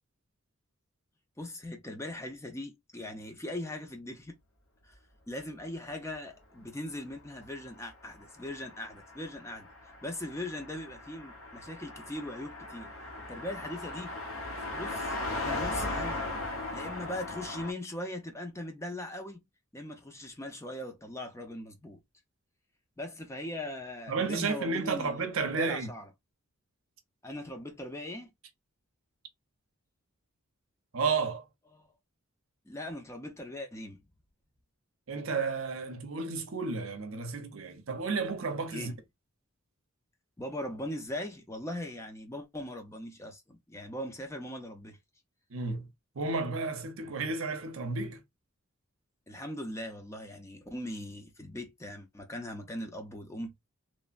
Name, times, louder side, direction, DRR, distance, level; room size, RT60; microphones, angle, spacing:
voice 1, 1.4-4.3 4.8-5.0 5.3-9.7 10.0-12.9 13.3-14.2 14.7-19.4 19.7-22.0 23.0-25.2 25.6-26.1 27.2-28.3 31.7-31.9 32.7-34.0 38.7-38.9 40.4-45.0 49.3-53.5, left 1 dB, 15° left, 0.5 m, -40 dB
Car passing by, 7.6-17.7, left 2 dB, 75° left, 1.0 m, -38 dB
voice 2, 24.1-25.9 30.9-31.5 35.1-38.9 45.5-45.9 46.2-48.2, right 4 dB, 65° right, 0.7 m, -32 dB
3.1 x 2.1 x 2.4 m
head